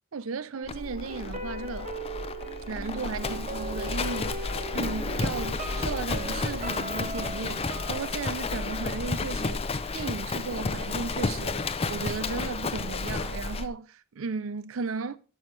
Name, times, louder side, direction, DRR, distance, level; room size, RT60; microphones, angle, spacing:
voice 1, 0.1-1.9 2.7-9.6 9.9-11.6 11.9-15.2, right 4 dB, 70° right, 0.5 m, -35 dB
sound 1, 0.5-9.5 9.8-9.9, right 1 dB, 35° right, 1.2 m, -39 dB
Livestock farm animals working animals, 0.6-13.7, left 3 dB, 30° left, 0.5 m, -32 dB
12.5 x 7.0 x 3.2 m
head